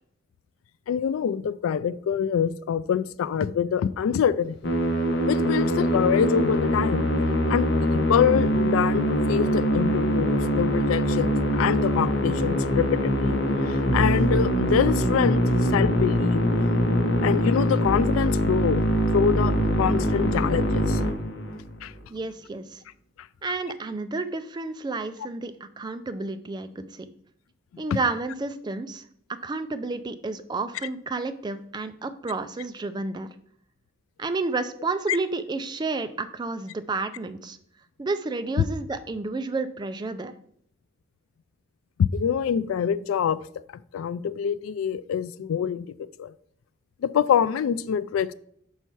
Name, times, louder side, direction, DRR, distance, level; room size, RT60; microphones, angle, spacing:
voice 1, 0.9-4.7 5.2-7.1 7.5-13.4 13.6-16.5 17.2-18.9 19.1-21.0 21.8-21.9 23.5-23.6 27.7-28.0 35.1-35.2 38.6-38.7 42.0-43.4 43.9-46.3 47.0-48.3, left 7 dB, 85° left, 17 dB, 0.3 m, -25 dB
Musical instrument, 4.6-21.8, equal, 60° left, 1.0 m, -23 dB
voice 2, 22.1-22.8 23.4-27.1 27.8-29.0 29.3-33.3 34.2-37.6 38.0-40.3, right 3 dB, 20° right, 10 dB, 0.4 m, -31 dB
5.6 x 5.5 x 4.5 m, 0.67 s
head